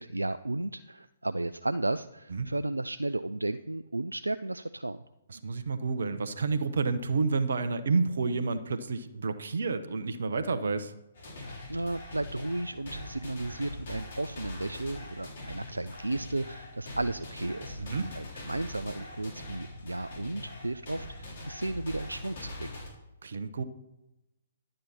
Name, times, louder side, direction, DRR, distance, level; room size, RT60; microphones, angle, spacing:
voice 1, 0.0-5.0 11.7-17.8 18.1-22.7, right 2 dB, 85° right, 11 dB, 0.4 m, -34 dB
voice 2, 5.3-10.9 17.8-18.1 23.2-23.6, right 4 dB, 60° right, 12 dB, 0.9 m, -30 dB
sound 1, 11.1-22.9, left 1 dB, 55° left, 4.0 m, -42 dB
11.5 x 9.0 x 4.3 m, 0.95 s
figure-of-eight pair, 130°, 0 cm